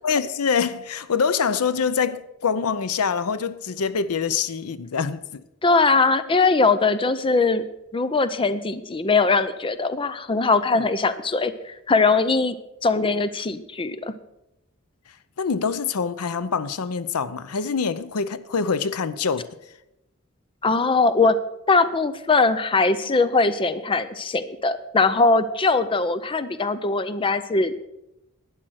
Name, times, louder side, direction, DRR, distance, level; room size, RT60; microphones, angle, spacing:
voice 1, 0.0-5.4 10.7-10.8 15.4-19.5, left 6 dB, 90° left, 0.6 m, -25 dB
voice 2, 5.6-7.6 7.9-12.6 12.8-14.1 20.6-21.4 21.7-27.8, left 3 dB, 25° left, 0.5 m, -21 dB
12.0 x 9.0 x 6.3 m
head